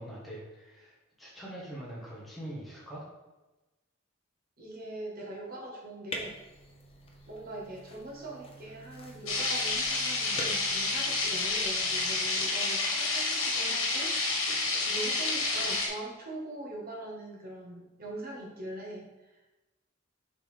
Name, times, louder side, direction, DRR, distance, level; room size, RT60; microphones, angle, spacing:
voice 1, 0.0-3.0, right 1 dB, ahead, -7 dB, 1.3 m, -43 dB
voice 2, 4.6-6.4 7.3-14.2 14.8-19.3, right 1 dB, 50° right, -1 dB, 1.4 m, -42 dB
sound 1, 6.1-12.2, left 1 dB, 30° left, 0.8 m, -45 dB
sound 2, 9.3-15.9, left 3 dB, 85° left, 1.4 m, -29 dB
6.6 x 4.1 x 3.4 m, 1.1 s
head